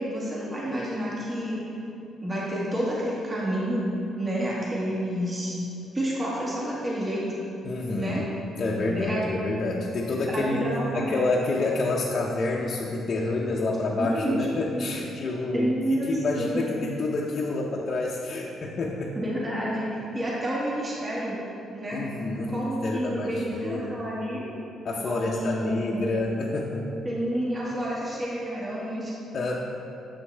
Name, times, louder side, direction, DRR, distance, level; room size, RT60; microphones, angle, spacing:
voice 1, 0.0-1.6 2.2-3.8 4.2-5.6 5.9-7.5 8.0-8.2 8.8-9.2 10.3-11.3 14.0-14.4 14.7-14.8 15.5-16.1 16.4-16.6 19.2-21.4 21.7-22.0 22.5-24.4 25.0-26.1 27.0-29.1, equal, 30° right, -6 dB, 1.7 m, -29 dB
voice 2, 7.6-8.2 8.6-10.6 10.9-19.2 21.9-24.0 24.8-26.9 29.3-29.6, left 2 dB, 50° left, -3 dB, 0.6 m, -28 dB
7.9 x 6.2 x 3.3 m, 2.8 s
cardioid pair, 90°, 0 cm